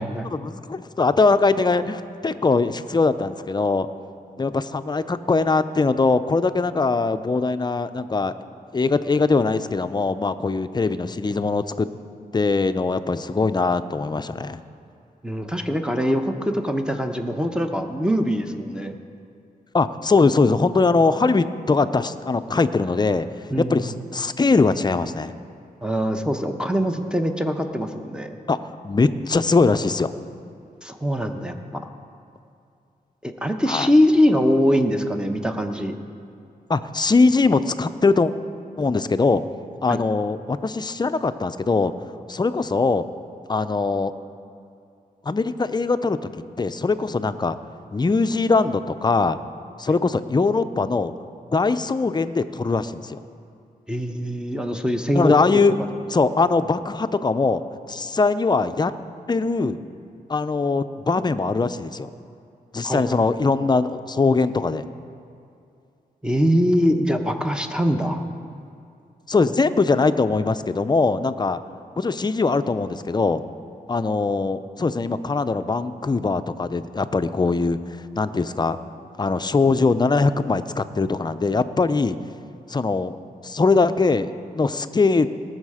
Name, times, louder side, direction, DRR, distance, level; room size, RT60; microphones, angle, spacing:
voice 1, 0.3-3.9 4.4-8.3 8.7-11.9 12.3-14.6 19.7-25.3 28.5-30.1 33.7-33.9 36.7-38.3 38.8-39.4 39.8-41.9 42.3-43.0 43.5-44.1 45.2-46.2 46.6-47.6 47.9-49.4 49.8-51.1 51.5-53.2 55.1-55.8 56.1-58.9 59.3-59.8 60.3-62.1 62.7-64.8 69.3-71.6 72.0-73.4 73.9-78.8 79.2-82.2 82.7-83.2 83.4-85.3, left 3 dB, 25° left, 11 dB, 0.5 m, -21 dB
voice 2, 15.2-19.0 23.5-23.9 25.8-28.4 30.8-31.9 33.2-35.9 39.9-40.0 53.9-55.6 62.8-63.2 66.2-68.2, equal, 5° right, 5 dB, 0.8 m, -23 dB
18.5 x 6.5 x 4.9 m, 2.5 s
cardioid pair, 80°, 16 cm